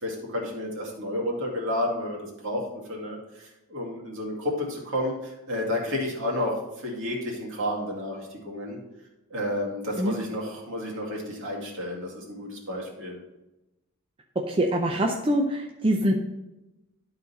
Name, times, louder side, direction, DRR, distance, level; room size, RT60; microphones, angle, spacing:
voice 1, 0.0-8.8 9.3-13.2, left 1 dB, 60° right, -2 dB, 2.3 m, -31 dB
voice 2, 14.5-16.1, right 1 dB, 25° right, 1 dB, 0.6 m, -24 dB
12.0 x 4.0 x 4.1 m, 0.95 s
head